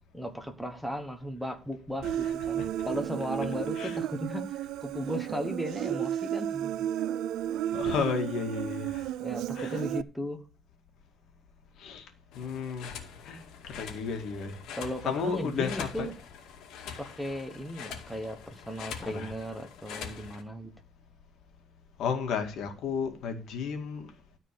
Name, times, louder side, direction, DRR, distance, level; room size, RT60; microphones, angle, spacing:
voice 1, 0.1-6.8 9.2-10.4 14.7-16.1 17.0-20.7, equal, ahead, 1.3 m, -36 dB
Human voice, 2.0-10.0, right 11 dB, 80° right, 0.4 m, -33 dB
voice 2, 2.6-3.0 3.8-4.0 7.7-9.1 9.6-9.8 11.8-12.0 12.3-14.5 15.0-16.1 19.0-19.3 22.0-24.1, left 6 dB, 60° left, 2.1 m, -33 dB
sound 1, 12.3-20.4, left 7 dB, 80° left, 2.2 m, -44 dB
13.5 x 4.5 x 6.8 m
cardioid pair, 160°, 0 cm